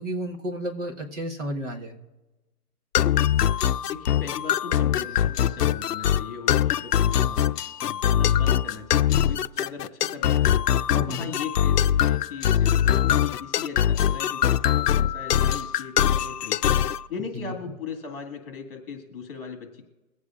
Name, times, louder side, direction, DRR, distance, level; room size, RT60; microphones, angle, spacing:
voice 1, 0.0-2.0 11.0-11.2 17.3-17.5, equal, 50° right, 1 dB, 1.5 m, -32 dB
sound 1, 2.9-17.0, left 10 dB, 80° left, 0.5 m, -22 dB
voice 2, 3.9-7.5 7.8-10.6 10.9-19.8, left 6 dB, 35° left, 4 dB, 1.9 m, -38 dB
22.5 x 8.2 x 2.5 m, 1.1 s
hypercardioid pair, 180°, 47 cm